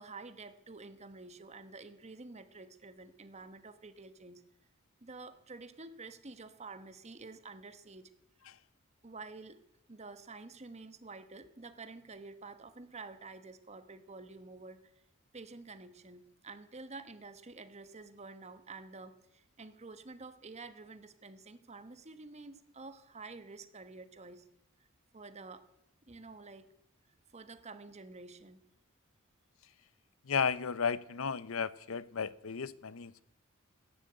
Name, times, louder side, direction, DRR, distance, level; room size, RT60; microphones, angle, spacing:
voice 1, 0.0-4.4 5.0-8.1 9.0-9.6 9.9-14.8 15.3-24.5 25.1-25.6 26.1-26.7 27.3-28.6, right 3 dB, 35° right, 10 dB, 1.1 m, -49 dB
voice 2, 30.2-33.2, left 6 dB, 80° left, 18 dB, 0.7 m, -34 dB
14.5 x 10.0 x 7.9 m, 0.78 s
head